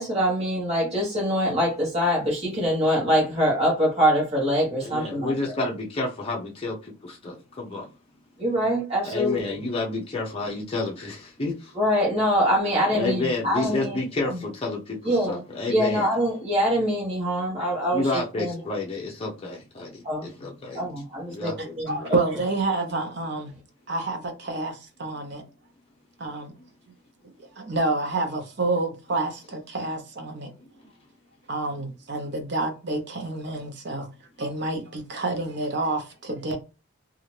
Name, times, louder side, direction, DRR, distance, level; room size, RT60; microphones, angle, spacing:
voice 1, 0.0-5.5 8.4-9.4 11.7-14.0 14.3-14.4 15.0-18.6 20.0-20.5 20.7-22.2, equal, 30° right, 1.1 m, -24 dB
voice 2, 4.8-6.8 7.0-7.9 9.0-11.7 12.9-15.0 15.3-16.1 17.9-20.8 21.3-22.1, left 2 dB, 25° left, 0.6 m, -30 dB
voice 3, 21.6-23.5 23.9-24.7 25.0-25.4 26.2-26.5 27.6-30.5 31.5-34.1 34.4-36.6, right 2 dB, 50° right, 0.7 m, -28 dB
2.7 x 2.4 x 3.1 m
head